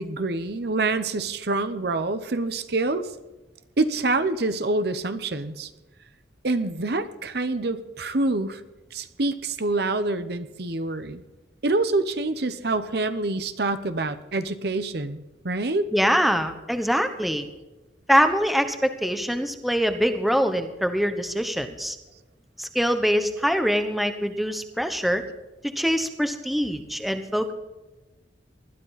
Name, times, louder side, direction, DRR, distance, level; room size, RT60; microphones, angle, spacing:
voice 1, 0.0-3.1 3.8-5.7 6.4-8.6 8.9-11.2 11.6-15.9, right 2 dB, 60° right, 11 dB, 0.9 m, -26 dB
voice 2, 15.9-17.4 18.1-22.0 22.6-25.2 25.6-27.5, equal, ahead, 8 dB, 1.1 m, -24 dB
20.5 x 12.5 x 4.2 m, 1.1 s
head